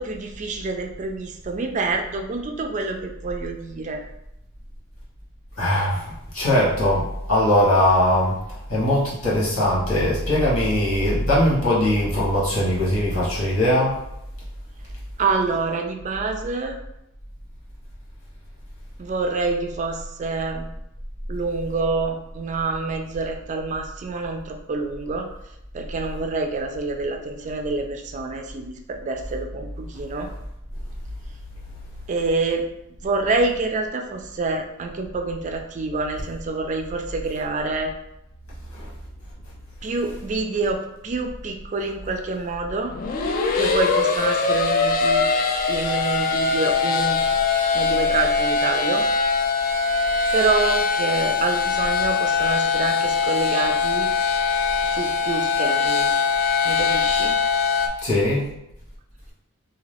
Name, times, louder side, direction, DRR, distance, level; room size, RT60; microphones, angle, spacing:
voice 1, 0.0-4.1 15.2-16.8 19.0-20.7 21.3-25.3 25.7-30.3 32.1-32.6 33.0-37.9 39.8-42.9 43.5-45.3 45.7-47.2 47.7-49.0 50.3-54.1 54.8-56.1 56.6-57.3, right 3 dB, 35° right, 4 dB, 0.3 m, -27 dB
voice 2, 5.6-8.4 8.7-14.0 38.7-38.9 58.0-58.5, left 1 dB, 85° left, -7 dB, 1.4 m, -20 dB
sound 1, 42.9-57.9, left 4 dB, 40° left, 0.3 m, -22 dB
2.7 x 2.4 x 3.3 m, 0.84 s
head